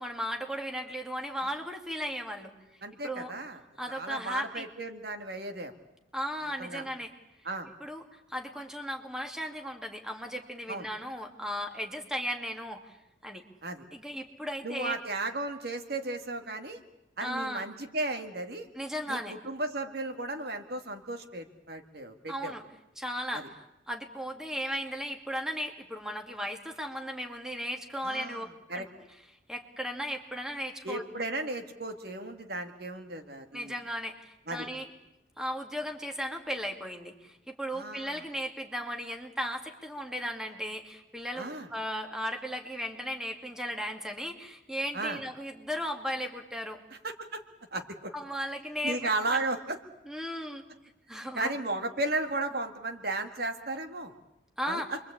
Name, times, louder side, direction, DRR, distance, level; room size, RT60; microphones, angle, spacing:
voice 1, 0.0-2.5 3.0-3.3 3.8-4.7 6.1-7.1 7.8-13.0 13.2-13.4 13.9-15.0 17.2-17.7 18.7-19.4 22.3-22.6 23.0-28.5 28.7-28.9 29.5-31.0 33.5-34.9 35.4-46.8 48.1-49.1 50.1-50.6 51.1-51.5 54.6-55.0, equal, 5° right, 3 dB, 2.3 m, -36 dB
voice 2, 2.8-3.6 3.9-5.7 6.6-6.9 7.4-7.7 10.7-10.9 13.6-13.9 14.6-16.8 17.2-18.7 19.1-22.5 23.3-23.5 28.0-28.9 30.8-33.7 34.5-34.7 37.7-38.2 41.4-41.7 44.9-45.2 46.9-47.4 47.7-48.1 48.8-49.8 51.2-54.1 54.7-55.0, right 2 dB, 50° right, 6 dB, 2.0 m, -35 dB
28.5 x 23.5 x 8.6 m, 0.87 s
head